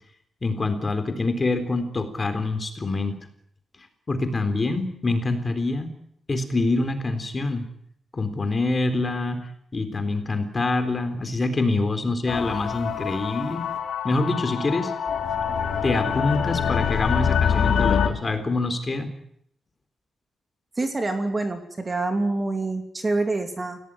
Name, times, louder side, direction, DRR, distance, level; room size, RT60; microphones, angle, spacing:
voice 1, 0.4-3.2 4.1-5.9 6.3-7.7 8.1-9.5 9.7-13.6 14.0-14.9 15.8-19.1, left 2 dB, 25° left, 8 dB, 3.8 m, -25 dB
sound 1, 12.3-18.1, left 7 dB, 70° left, 4.2 m, -25 dB
voice 2, 20.8-23.8, right 2 dB, 20° right, 6 dB, 2.8 m, -26 dB
28.5 x 17.5 x 9.9 m, 0.70 s
wide cardioid pair, 155°, 0 cm